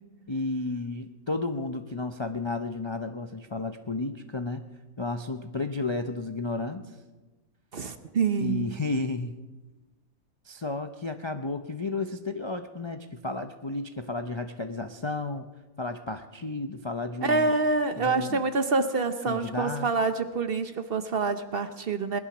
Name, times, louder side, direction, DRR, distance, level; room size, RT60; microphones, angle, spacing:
voice 1, 0.3-4.6 5.0-7.0 8.4-9.4 10.4-15.4 15.8-17.6 18.0-18.4 19.3-19.9, left 3 dB, 35° left, 6 dB, 0.4 m, -32 dB
voice 2, 7.7-8.7 17.2-22.2, right 4 dB, 45° right, 9 dB, 0.9 m, -26 dB
20.5 x 11.5 x 6.1 m, 1.2 s
omnidirectional pair, 1.5 m